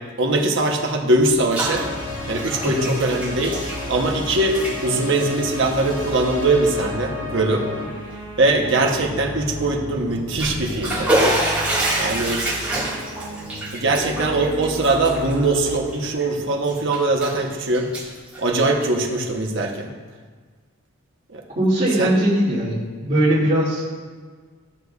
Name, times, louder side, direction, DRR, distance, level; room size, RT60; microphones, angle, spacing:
voice 1, 0.0-1.9 2.3-3.6 3.9-7.7 8.4-11.1 12.0-12.5 12.8-13.0 13.7-17.9 18.4-19.9 21.3-21.4 22.0-22.1, right 2 dB, 55° right, 1 dB, 0.9 m, -21 dB
Bathtub (filling or washing), 1.2-1.8 2.1-4.2 4.5-4.8 5.5-5.7 6.3-6.4 6.8-6.9 10.1-16.2 16.6-17.4 17.7-19.1, right 1 dB, 5° right, 1.7 m, -26 dB
sound 1, 1.6-15.8, left 1 dB, 80° left, 1.6 m, -33 dB
voice 2, 21.6-23.8, right 1 dB, 35° right, -15 dB, 2.1 m, -20 dB
12.5 x 6.4 x 2.3 m, 1.5 s
head